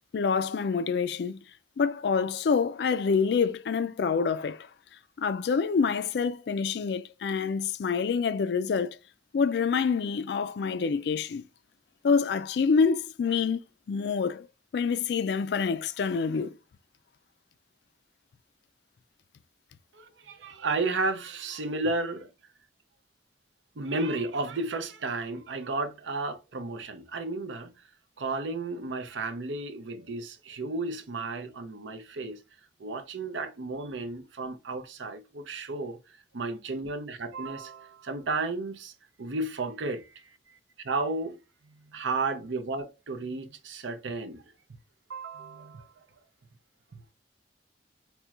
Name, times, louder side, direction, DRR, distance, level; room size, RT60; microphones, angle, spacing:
voice 1, 0.1-1.4 1.8-4.7 5.2-9.0 9.3-11.5 12.0-13.6 13.9-14.5 14.7-16.5, left 5 dB, 65° left, 0.3 m, -26 dB
voice 2, 19.9-22.3 23.8-27.7 28.2-32.4 32.8-38.9 39.2-40.3 40.8-41.4 41.7-44.4 45.1-45.9 46.9-47.0, right 3 dB, 85° right, 0.6 m, -33 dB
4.4 x 3.0 x 2.4 m
head